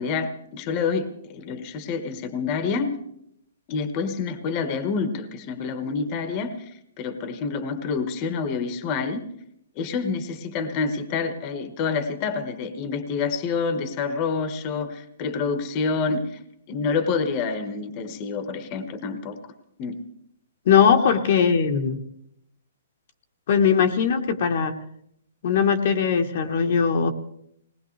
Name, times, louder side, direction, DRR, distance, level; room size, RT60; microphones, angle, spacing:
voice 1, 0.0-3.0 3.7-6.7 7.0-9.2 9.8-16.4 16.7-19.4 19.8-20.0, left 5 dB, 25° left, 9 dB, 1.3 m, -27 dB
voice 2, 20.7-22.0 23.5-24.7 25.4-27.1, left 7 dB, 45° left, 4 dB, 1.2 m, -20 dB
21.0 x 19.0 x 3.3 m, 0.73 s
hypercardioid pair, 165°, 0 cm